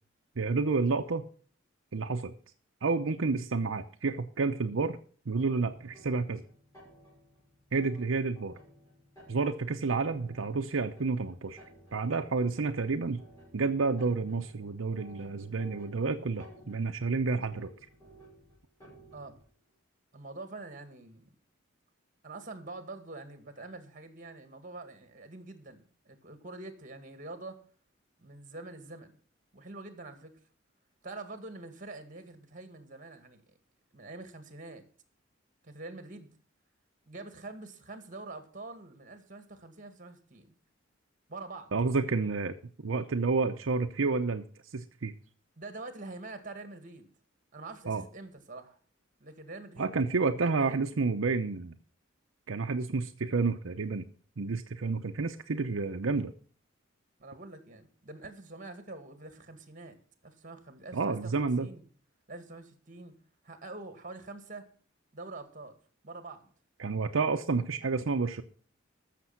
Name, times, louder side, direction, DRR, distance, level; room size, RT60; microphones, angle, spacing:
voice 1, 0.4-1.2 1.9-2.3 2.8-5.0 5.3-6.4 7.7-8.5 9.3-11.6 11.9-13.2 13.5-17.7 41.7-42.5 42.8-44.5 44.7-45.1 47.9-48.0 49.8-51.7 52.5-54.0 54.4-56.3 60.9-61.7 66.8-68.4, right 4 dB, 80° right, 6 dB, 0.7 m, -30 dB
sound 1, 5.3-19.5, right 1 dB, 20° left, 6.3 m, -56 dB
voice 2, 20.1-21.3 22.2-27.6 28.2-29.1 29.5-30.3 31.0-33.6 33.9-34.8 35.6-36.3 37.1-40.6 41.3-41.7 45.6-47.1 47.5-48.8 49.2-50.0 50.6-50.8 57.2-61.8 62.3-63.2 63.4-64.7 65.1-65.8 66.0-66.5, right 2 dB, 40° right, 8 dB, 2.0 m, -45 dB
14.5 x 6.8 x 5.8 m, 0.43 s
head